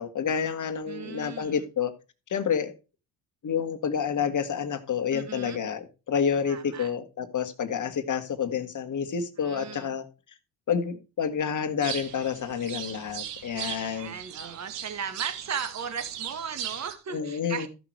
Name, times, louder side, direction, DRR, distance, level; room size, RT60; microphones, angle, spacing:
voice 1, 0.0-1.9 2.3-2.7 3.4-10.0 10.7-14.1 17.1-17.7, left 7 dB, 40° left, 2.0 m, -29 dB
voice 2, 0.9-1.7 5.1-5.6 6.5-6.9 9.4-10.0 13.6-17.7, right 6 dB, 35° right, 2.0 m, -37 dB
sound 1, 11.8-16.9, right 10 dB, 85° right, 1.4 m, -38 dB
14.0 x 6.1 x 4.7 m
hypercardioid pair, 70°, 47 cm